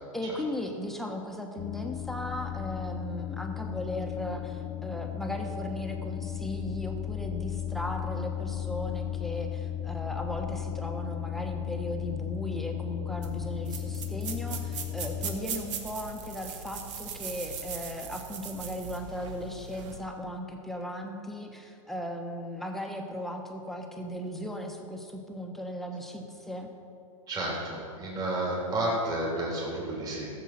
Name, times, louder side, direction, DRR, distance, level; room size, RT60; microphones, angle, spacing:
voice 1, 0.1-26.7, left 1 dB, ahead, 2 dB, 1.2 m, -37 dB
sound 1, 1.6-15.4, left 10 dB, 25° left, 0.4 m, -35 dB
sound 2, 13.2-20.0, right 7 dB, 60° right, 1.5 m, -39 dB
voice 2, 27.3-30.3, right 1 dB, 20° right, -5 dB, 3.1 m, -31 dB
14.0 x 7.4 x 5.9 m, 2.5 s
hypercardioid pair, 120°, 17 cm